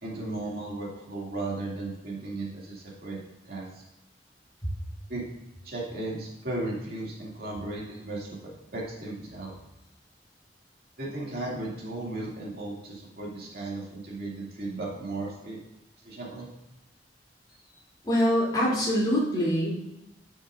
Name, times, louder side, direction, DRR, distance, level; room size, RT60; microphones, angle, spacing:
voice 1, 0.0-3.2 3.4-3.8 5.1-5.2 5.6-8.4 8.7-9.5 11.0-15.6 16.0-16.5, right 2 dB, 60° right, -4 dB, 2.4 m, -35 dB
voice 2, 18.0-19.9, equal, 25° left, -6 dB, 3.0 m, -24 dB
9.9 x 6.2 x 2.5 m, 0.91 s
head